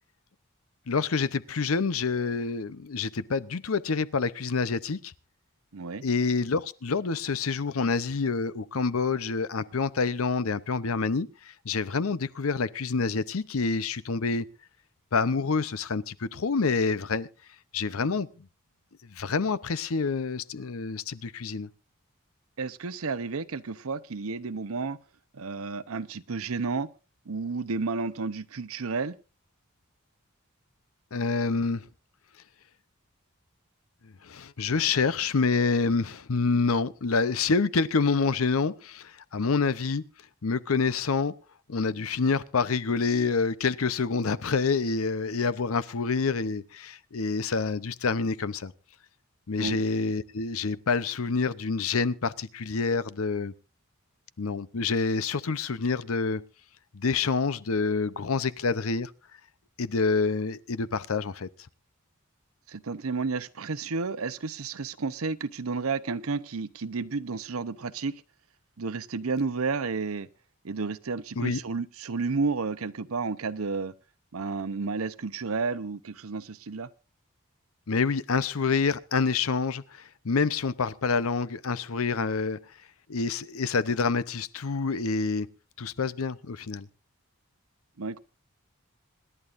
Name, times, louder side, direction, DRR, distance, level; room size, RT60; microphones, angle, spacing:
voice 1, 0.9-5.1 6.0-11.3 11.6-14.5 15.1-17.3 17.7-18.5 19.1-21.7 31.1-31.8 34.0-40.0 40.4-41.3 41.7-48.7 49.5-53.5 54.4-56.4 56.9-59.1 59.8-61.5 71.4-71.6 77.9-82.6 83.1-85.5 85.8-86.9, left 4 dB, 75° left, 0.7 m, -27 dB
voice 2, 5.7-6.1 22.6-25.0 25.3-26.9 27.3-29.2 49.6-49.8 62.7-68.1 68.8-70.3 70.6-73.9 74.3-76.9 88.0-88.2, right 4 dB, 80° right, 0.8 m, -31 dB
26.5 x 11.0 x 2.6 m
head